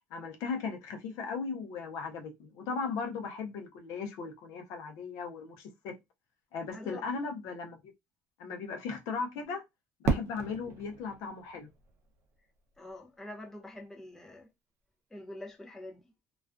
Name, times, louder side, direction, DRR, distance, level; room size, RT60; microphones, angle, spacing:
voice 1, 0.1-6.0 6.5-7.9 8.4-9.6 10.0-11.7, left 5 dB, 70° left, 0.6 m, -37 dB
Fireworks, 10.0-12.9, right 4 dB, 50° right, 0.6 m, -35 dB
voice 2, 12.8-14.5 15.1-16.0, left 1 dB, 5° left, 0.4 m, -45 dB
2.3 x 2.2 x 2.4 m
cardioid pair, 140°, 6 cm